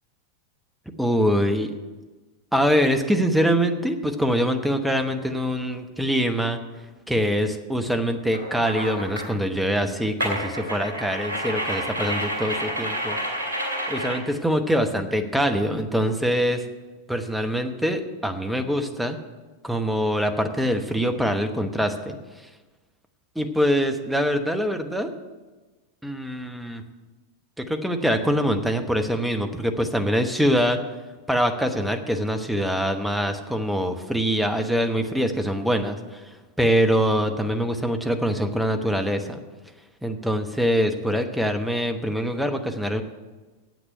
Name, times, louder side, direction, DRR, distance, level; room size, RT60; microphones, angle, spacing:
voice 1, 1.0-1.7 2.5-6.6 7.1-13.2 13.9-16.6 17.1-19.2 19.6-22.2 23.3-25.1 26.0-26.8 27.6-30.8 31.3-39.4 40.0-43.0, equal, 5° right, 6 dB, 1.0 m, -24 dB
sound 1, 8.3-9.3 10.2-14.2, equal, 75° right, 2.5 m, -29 dB
9.3 x 8.0 x 9.2 m, 1.3 s
figure-of-eight pair, 90°, 0 cm